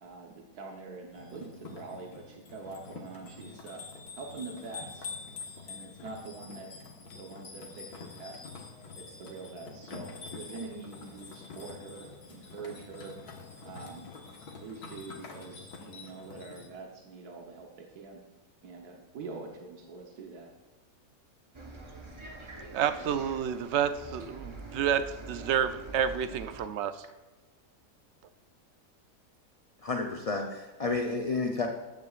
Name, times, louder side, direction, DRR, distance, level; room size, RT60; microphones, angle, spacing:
voice 1, 0.0-3.8 4.1-5.1 5.7-8.5 9.0-13.1 13.6-14.1 14.6-18.2 18.6-20.5, right 4 dB, 90° right, 1 dB, 1.6 m, -44 dB
sound 1, 1.1-16.7, left 4 dB, 85° left, 1.9 m, -46 dB
Bus, 21.5-26.7, right 2 dB, 25° right, 0.9 m, -45 dB
voice 2, 22.7-27.0, right 8 dB, 65° right, 11 dB, 0.7 m, -29 dB
voice 3, 29.8-31.7, left 3 dB, 45° left, 3 dB, 0.4 m, -31 dB
14.0 x 9.7 x 2.4 m, 1.2 s
omnidirectional pair, 1.6 m